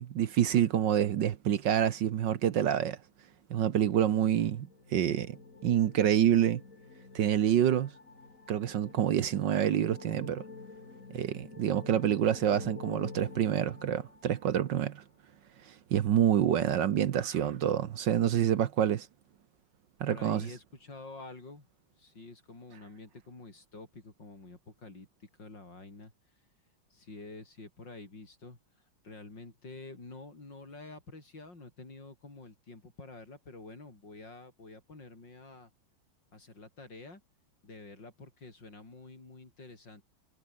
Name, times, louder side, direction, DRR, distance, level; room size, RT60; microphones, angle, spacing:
voice 1, 0.0-3.0 3.5-6.6 7.1-7.9 8.5-10.4 11.1-15.0 15.9-19.1 20.0-20.4, right 10 dB, 65° right, 1.6 m, -27 dB
sound 1, 4.2-14.7, left 4 dB, 40° left, 3.2 m, -49 dB
voice 2, 20.1-21.7 22.0-26.1 26.9-28.6 29.0-35.7 36.3-37.2 37.6-40.0, left 3 dB, 60° left, 6.5 m, -48 dB
omnidirectional pair, 2.2 m